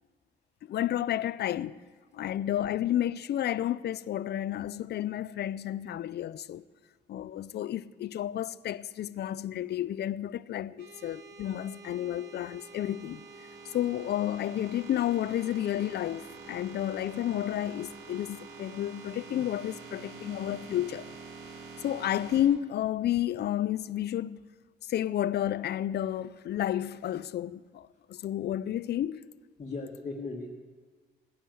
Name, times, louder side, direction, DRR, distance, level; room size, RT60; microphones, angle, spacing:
voice 1, 0.7-1.8 2.1-6.6 7.1-13.2 13.7-21.1 21.8-24.4 24.8-29.2, left 12 dB, 55° left, 0.5 m, -31 dB
sound 1, 10.8-22.4, right 4 dB, 85° right, 2.6 m, -47 dB
voice 2, 29.6-30.5, left 3 dB, 35° left, 1.5 m, -38 dB
16.0 x 10.0 x 7.7 m
cardioid pair, 90°, 20 cm